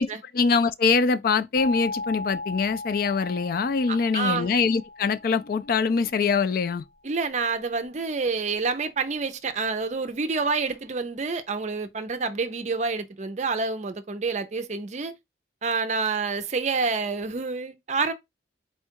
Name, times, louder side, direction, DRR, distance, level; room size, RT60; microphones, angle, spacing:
voice 1, 0.3-6.8, left 5 dB, 55° left, 0.4 m, -23 dB
sound 1, 1.6-6.3, left 2 dB, 80° left, 2.2 m, -37 dB
voice 2, 3.9-4.5 7.0-15.1 15.6-18.1, right 4 dB, 40° right, 0.5 m, -28 dB
4.3 x 2.3 x 4.5 m
head